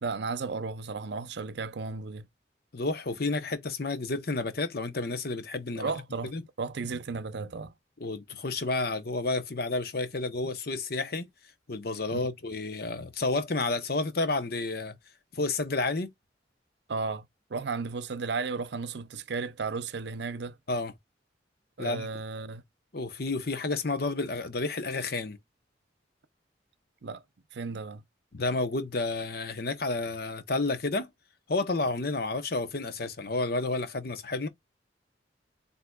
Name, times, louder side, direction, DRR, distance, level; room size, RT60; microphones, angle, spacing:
voice 1, 0.0-2.3 5.8-6.3 6.6-7.7 12.1-12.2 16.9-20.5 21.8-22.6 27.0-27.2 27.5-28.0, right 4 dB, 65° right, 0.6 m, -34 dB
voice 2, 2.7-5.9 6.3-6.4 8.0-11.3 11.7-14.9 15.3-16.1 20.7-20.9 21.8-22.1 22.9-25.4 28.3-31.1 31.5-34.5, left 3 dB, 55° left, 0.9 m, -30 dB
7.9 x 2.8 x 2.3 m
head